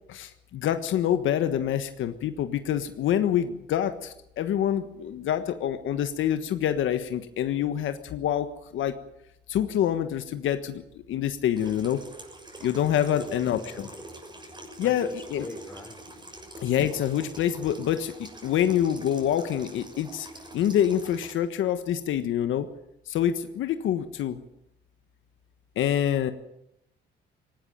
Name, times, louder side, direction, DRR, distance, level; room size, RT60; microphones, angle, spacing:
voice 1, 0.1-8.5 8.7-9.0 9.5-10.8 11.1-12.0 12.6-13.9 14.8-15.5 16.6-20.3 20.5-22.7 23.1-24.4 25.7-26.3, left 10 dB, 80° left, 9 dB, 1.4 m, -26 dB
Water tap faucet / Sink (filling or washing), 11.5-21.3, right 1 dB, 20° right, 6.6 m, -45 dB
voice 2, 13.0-13.4 13.7-14.2 14.8-16.0, left 1 dB, 10° left, 5 dB, 5.0 m, -43 dB
18.0 x 18.0 x 9.1 m, 0.80 s
cardioid pair, 90°, 20 cm